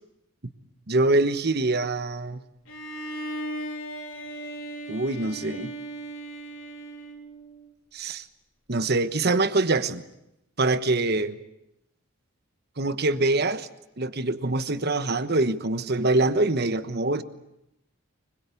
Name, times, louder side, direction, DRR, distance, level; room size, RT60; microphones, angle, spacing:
voice 1, 0.9-2.4 4.9-5.7 7.9-8.3 8.7-10.0 10.6-11.4 12.8-13.7 14.0-17.2, right 2 dB, 50° right, 11 dB, 1.2 m, -24 dB
Bowed string instrument, 2.7-7.7, right 1 dB, 70° left, 3.4 m, -37 dB
25.0 x 22.0 x 8.4 m, 0.86 s
head